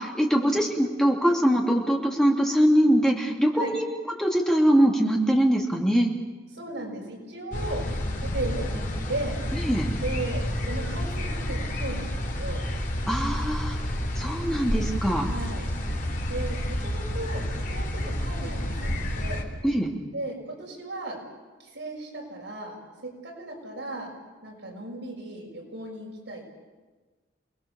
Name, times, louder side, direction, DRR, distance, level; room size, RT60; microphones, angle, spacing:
voice 1, 0.0-3.8 4.2-6.1 9.6-9.9 13.1-13.7 14.2-15.2 19.6-19.9, equal, 5° left, -1 dB, 2.9 m, -22 dB
voice 2, 6.5-7.8 8.3-8.8 9.1-9.4 10.0-12.6 15.2-15.7 16.3-17.4 17.7-19.4 20.1-21.2 21.6-22.7 23.0-24.1 24.4-26.5, right 2 dB, 75° right, -1 dB, 6.6 m, -36 dB
sound 1, 7.5-19.4, left 1 dB, 45° left, 3.2 m, -30 dB
29.5 x 20.5 x 7.2 m, 1.3 s
head